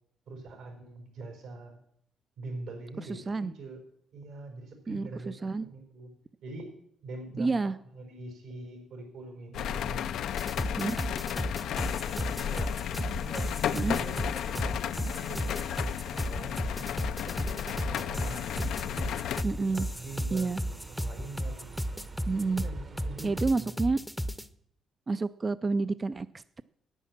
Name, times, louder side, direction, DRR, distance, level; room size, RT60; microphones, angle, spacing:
voice 1, 0.3-1.8 2.4-3.8 4.1-6.1 6.4-6.7 7.0-7.6 7.9-13.5 13.9-14.2 14.5-19.2 19.6-22.0 22.5-23.7, right 2 dB, 80° right, 3 dB, 4.4 m, -44 dB
voice 2, 3.1-3.5 4.9-5.7 7.4-7.7 10.8-11.0 13.7-14.0 19.4-19.9 20.3-20.6 22.3-22.6 23.2-24.0 25.1-26.6, right 3 dB, 30° right, 14 dB, 0.4 m, -29 dB
sound 1, 9.5-19.4, left 10 dB, 75° left, 0.4 m, -33 dB
sound 2, 10.4-24.5, equal, ahead, 0.7 m, -34 dB
Bus, 17.2-23.4, right 4 dB, 45° right, 1.1 m, -48 dB
10.0 x 9.4 x 7.3 m, 0.69 s
cardioid pair, 90°, 0 cm